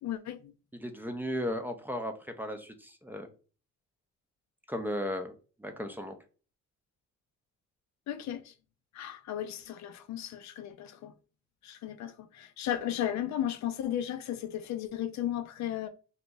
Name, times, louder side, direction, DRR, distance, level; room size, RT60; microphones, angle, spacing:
voice 1, 0.0-0.5 8.1-8.5 8.9-11.1 11.6-15.9, left 11 dB, 65° left, 0.5 m, -35 dB
voice 2, 0.7-3.3 4.7-5.3 5.6-6.2, equal, 5° right, 0.5 m, -35 dB
2.9 x 2.4 x 3.8 m
cardioid pair, 90°, 30 cm